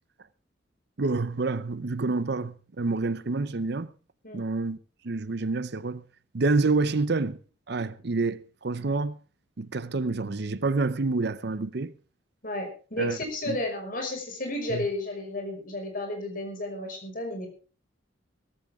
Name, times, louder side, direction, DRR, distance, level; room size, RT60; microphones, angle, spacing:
voice 1, 1.0-3.9 4.3-4.8 5.0-6.0 6.3-7.4 7.7-9.2 9.6-11.9 13.0-13.2 13.5-13.6 14.7-14.9, right 3 dB, 60° right, 0.7 m, -28 dB
voice 2, 12.4-17.5, left 1 dB, 45° left, 5.8 m, -32 dB
17.0 x 14.5 x 3.6 m
head